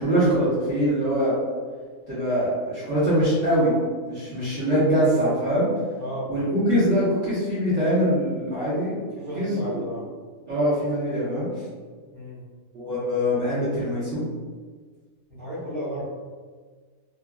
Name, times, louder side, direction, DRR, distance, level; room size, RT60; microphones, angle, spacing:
voice 1, 0.0-1.4 2.1-3.7 4.0-5.7 6.3-9.1 9.3-9.8 10.5-11.5 12.7-14.3, equal, 60° right, -12 dB, 1.3 m, -23 dB
voice 2, 6.0-6.3 9.1-10.0 12.1-12.4 15.3-16.1, equal, 25° right, -9 dB, 1.0 m, -33 dB
3.0 x 2.5 x 2.2 m, 1.5 s
omnidirectional pair, 1.5 m